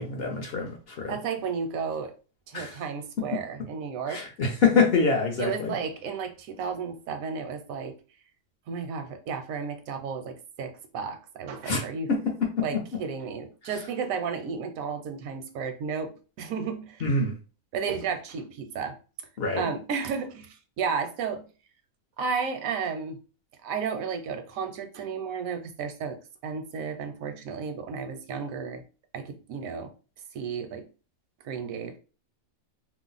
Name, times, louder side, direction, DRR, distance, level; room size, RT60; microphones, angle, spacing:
voice 1, 0.0-1.1 2.5-2.8 3.2-3.4 4.1-5.8 11.6-11.8 12.1-13.0 17.0-17.3 19.4-19.6, left 4 dB, 55° left, 0.7 m, -26 dB
voice 2, 1.1-2.1 2.5-4.2 5.4-8.0 8.7-12.1 12.6-16.1 16.4-17.0 17.7-19.0 19.5-21.4 22.2-23.2 23.6-26.2 26.4-28.8 29.1-29.9 30.3-30.9 31.4-32.0, right 6 dB, 85° right, 1.0 m, -33 dB
2.6 x 2.0 x 3.8 m
omnidirectional pair, 1.4 m